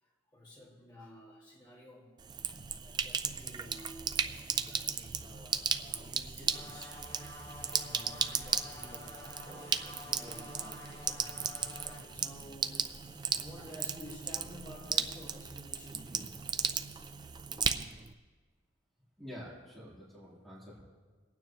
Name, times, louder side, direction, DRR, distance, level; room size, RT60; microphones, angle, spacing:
voice 1, 0.0-2.2 2.7-13.0 13.4-16.4, left 1 dB, 20° left, -6 dB, 2.2 m, -52 dB
Sink (filling or washing), 2.2-18.1, right 6 dB, 20° right, 0.3 m, -36 dB
sound 1, 6.5-12.0, left 2 dB, 45° left, 3.0 m, -49 dB
voice 2, 19.2-20.8, equal, ahead, -11 dB, 3.7 m, -48 dB
27.0 x 9.3 x 3.1 m, 1.5 s
head